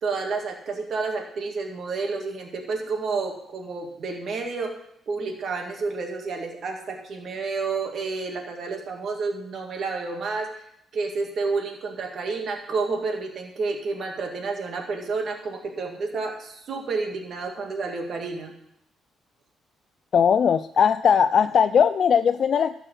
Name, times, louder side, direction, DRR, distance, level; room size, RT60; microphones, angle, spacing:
voice 1, 0.0-4.7 5.1-10.6 10.9-18.5, right 4 dB, 60° right, 2 dB, 2.1 m, -30 dB
voice 2, 20.1-22.8, left 7 dB, 55° left, 11 dB, 0.3 m, -19 dB
12.5 x 4.7 x 7.7 m, 0.74 s
cardioid pair, 90°, 0 cm